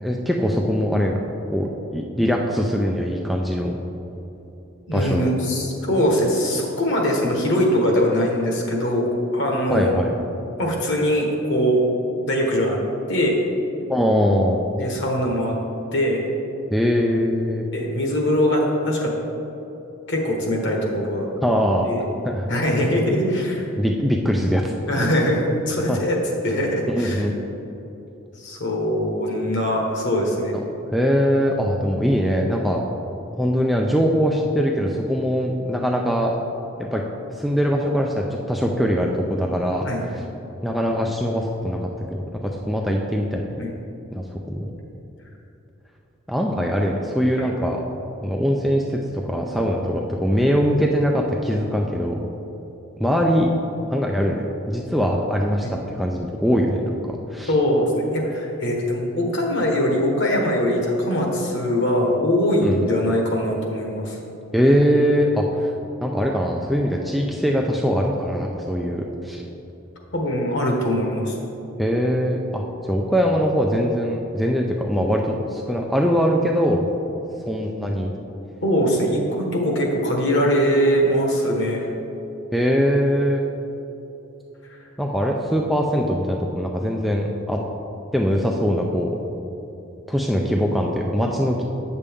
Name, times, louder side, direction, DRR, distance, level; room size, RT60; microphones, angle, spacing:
voice 1, 0.0-1.2 1.5-3.8 4.9-5.3 9.7-10.2 13.9-14.6 16.7-17.7 21.4-21.9 22.2-22.5 23.8-24.6 25.9-26.0 26.9-27.3 30.9-32.8 33.4-36.3 36.8-37.0 37.3-39.9 40.6-43.5 44.1-44.7 46.3-47.8 48.2-52.2 53.0-53.5 53.9-57.5 62.6-62.8 64.5-65.7 66.0-69.4 71.8-76.9 77.5-78.1 82.5-83.4 85.0-87.6 88.1-89.2 90.1-91.6, equal, ahead, -1 dB, 0.3 m, -22 dB
voice 2, 4.9-9.1 9.3-9.9 10.6-11.8 12.2-12.8 13.1-13.4 14.8-15.5 15.9-16.2 17.7-19.1 20.1-21.3 21.8-22.1 22.5-23.6 24.9-26.2 26.4-27.3 28.4-30.6 39.8-40.1 43.6-43.7 47.4-47.5 55.6-55.7 57.5-64.2 70.1-71.3 78.6-81.9 84.7-84.8, equal, 55° left, -1 dB, 1.3 m, -22 dB
8.5 x 6.7 x 3.5 m, 2.9 s
head